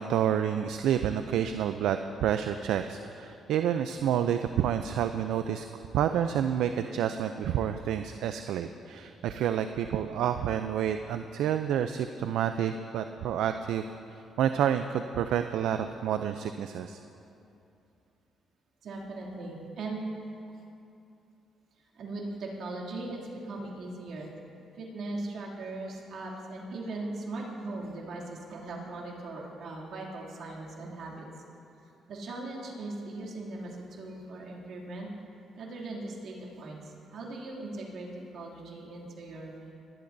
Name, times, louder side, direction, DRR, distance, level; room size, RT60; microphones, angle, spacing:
voice 1, 0.0-5.7 5.9-13.9 14.4-17.0, right 9 dB, 85° right, 8 dB, 0.4 m, -29 dB
voice 2, 18.8-20.0 20.5-20.6 21.8-24.3 24.7-31.3 32.1-35.1 35.5-39.5, right 2 dB, 70° right, -3 dB, 2.6 m, -39 dB
22.0 x 11.5 x 2.6 m, 2.7 s
cardioid pair, 90°, 0 cm